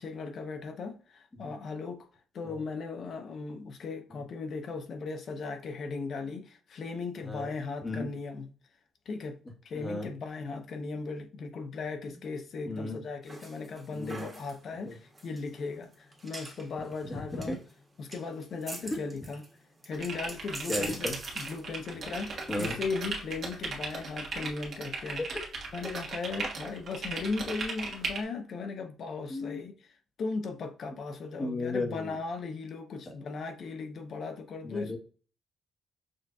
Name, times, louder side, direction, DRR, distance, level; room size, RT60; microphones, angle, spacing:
voice 1, 0.0-2.1 2.3-8.5 9.1-9.4 9.6-17.6 18.0-19.5 19.8-25.3 25.7-35.0, left 4 dB, 60° left, 0.7 m, -37 dB
voice 2, 9.7-10.1 12.7-13.0 13.9-14.3 14.8-14.9 17.1-17.6 18.9-19.0 20.7-21.2 22.5-22.8 25.0-25.3 29.3-29.6 31.4-32.2 34.6-35.0, left 2 dB, 20° left, 1.2 m, -34 dB
sound 1, 13.2-24.5, right 2 dB, 20° right, 1.4 m, -45 dB
sound 2, 19.9-28.2, right 4 dB, 55° right, 1.3 m, -37 dB
6.3 x 2.6 x 2.3 m
cardioid pair, 90°, 0 cm